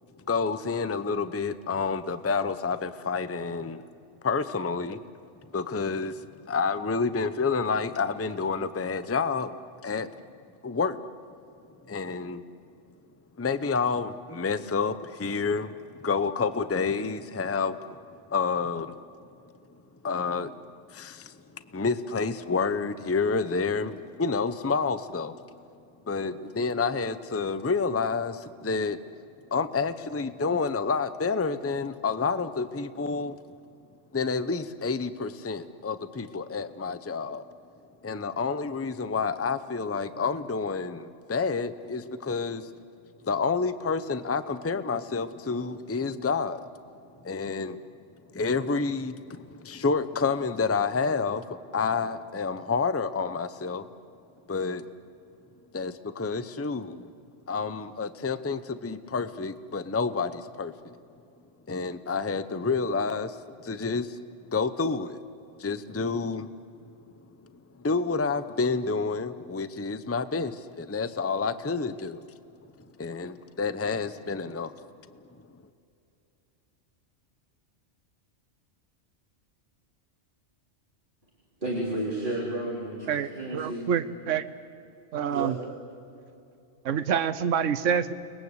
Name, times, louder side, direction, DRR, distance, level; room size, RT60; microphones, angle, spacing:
voice 1, 0.3-3.8 4.2-5.0 5.5-10.1 10.6-11.0 11.8-12.4 13.4-17.8 18.3-18.9 20.0-20.6 20.9-21.3 21.7-25.4 26.1-29.0 29.5-33.4 34.1-37.4 38.0-42.7 43.2-46.6 47.2-47.8 48.3-53.9 54.5-54.8 55.7-57.1 57.5-60.7 61.7-63.4 63.6-64.2 64.5-65.2 65.6-66.5 67.8-72.2 73.0-74.7, left 4 dB, 15° left, 0.6 m, -29 dB
voice 2, 81.6-83.9 85.3-85.5, right 1 dB, 40° right, 4.0 m, -32 dB
voice 3, 83.1-84.5 85.1-85.6 86.8-88.1, right 8 dB, 85° right, 1.1 m, -27 dB
29.5 x 21.0 x 8.2 m
omnidirectional pair, 1.3 m